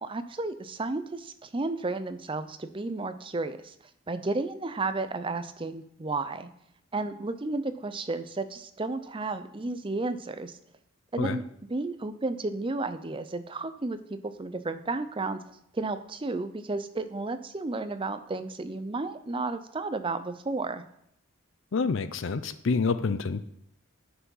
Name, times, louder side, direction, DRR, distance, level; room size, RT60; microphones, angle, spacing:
voice 1, 0.0-3.7 4.1-6.5 6.9-10.6 11.1-11.4 11.7-15.4 15.7-20.8, right 3 dB, 25° right, 11 dB, 0.5 m, -32 dB
voice 2, 21.7-23.4, left 4 dB, 60° left, 13 dB, 0.5 m, -27 dB
9.6 x 6.0 x 5.6 m, 0.73 s
head